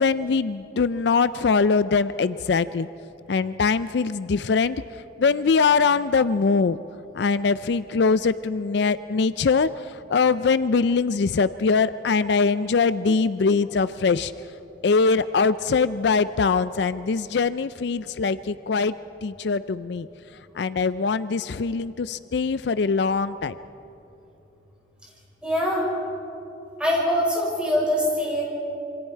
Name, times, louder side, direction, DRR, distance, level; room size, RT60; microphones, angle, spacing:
voice 1, 0.0-2.9 3.3-4.8 5.2-6.8 7.1-14.3 14.8-18.9 19.2-20.1 20.5-23.6, left 4 dB, 65° left, 14 dB, 0.4 m, -22 dB
voice 2, 25.4-25.9 26.8-28.4, equal, 5° right, -5 dB, 6.0 m, -23 dB
28.0 x 25.0 x 4.6 m, 2.9 s
head